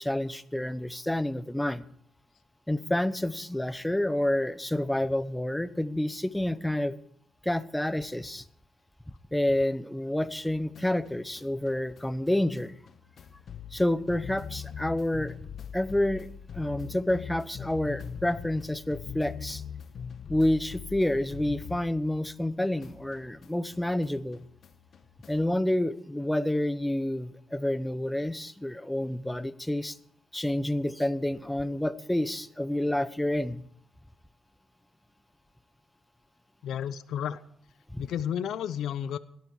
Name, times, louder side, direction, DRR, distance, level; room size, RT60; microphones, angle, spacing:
voice 1, 0.0-1.9 2.7-6.9 7.4-8.4 9.3-12.7 13.7-15.4 15.7-16.3 16.5-19.6 20.3-24.4 25.3-30.0 30.3-33.6 37.9-38.0, left 1 dB, 5° left, 14 dB, 0.9 m, -29 dB
sound 1, 10.2-22.5 22.8-25.6, left 7 dB, 55° left, 1.3 m, -43 dB
voice 2, 36.6-37.4 38.0-39.2, left 9 dB, 75° left, 14 dB, 0.7 m, -32 dB
17.5 x 12.0 x 4.7 m, 0.67 s
cardioid pair, 90°, 0 cm